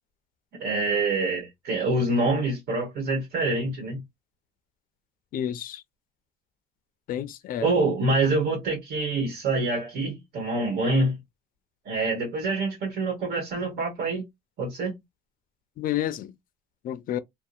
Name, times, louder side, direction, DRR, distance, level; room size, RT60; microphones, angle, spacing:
voice 1, 0.5-4.0 7.6-11.1 11.8-14.2 14.6-15.0, right 2 dB, 70° right, 1.2 m, -26 dB
voice 2, 5.3-5.8 7.1-7.7 15.8-16.3 16.8-17.2, left 11 dB, 55° left, 0.4 m, -30 dB
2.7 x 2.1 x 2.3 m
cardioid pair, 110°, 17 cm